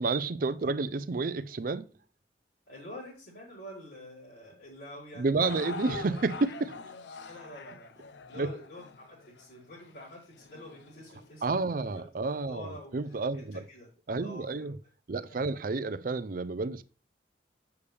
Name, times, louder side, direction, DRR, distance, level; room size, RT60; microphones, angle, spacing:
voice 1, 0.0-1.9 5.2-6.8 8.4-8.5 11.4-13.6 14.1-14.8 15.1-16.8, right 3 dB, 50° right, 0.5 m, -30 dB
voice 2, 2.7-5.7 7.2-12.0 12.5-12.9 13.3-13.9 14.2-14.9 15.5-15.6, left 1 dB, 60° left, 4.6 m, -47 dB
sound 1, 5.4-11.6 12.3-12.4 13.2-13.3, left 4 dB, 85° left, 0.6 m, -44 dB
8.5 x 7.0 x 3.3 m
head